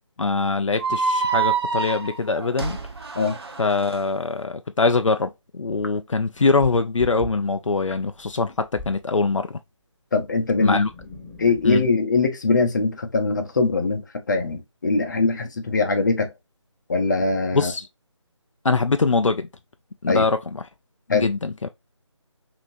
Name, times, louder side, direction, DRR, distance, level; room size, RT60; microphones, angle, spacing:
voice 1, 0.2-2.8 3.6-9.6 10.6-10.9 11.6-11.9 17.5-17.9 18.6-19.5 20.0-20.6 21.1-21.7, left 4 dB, 80° left, 0.5 m, -23 dB
sound 1, 0.8-4.0, right 5 dB, 55° right, 0.7 m, -26 dB
sound 2, 5.7-9.1 10.3-12.0, right 1 dB, 5° left, 0.7 m, -42 dB
voice 2, 10.1-10.8 11.4-16.3 16.9-17.7 20.1-20.2 21.1-21.3, left 3 dB, 40° left, 0.8 m, -22 dB
5.1 x 2.9 x 2.6 m
figure-of-eight pair, 155°, 16 cm